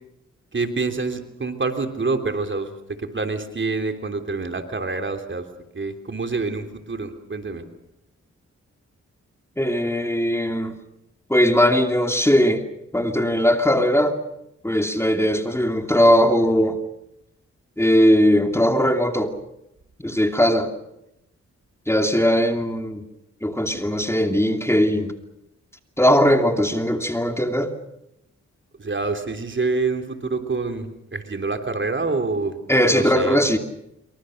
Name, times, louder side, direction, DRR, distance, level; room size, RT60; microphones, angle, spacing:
voice 1, 0.5-5.5 5.7-7.6 28.8-32.6 32.9-33.5, right 3 dB, 40° right, 6 dB, 3.3 m, -26 dB
voice 2, 9.6-10.7 11.3-12.6 12.9-14.1 14.6-16.8 17.8-19.3 20.0-20.7 21.9-23.0 23.4-25.1 26.0-27.7 32.7-33.6, equal, 10° left, 5 dB, 2.8 m, -19 dB
26.5 x 24.5 x 6.6 m, 0.84 s
cardioid pair, 60°, 29 cm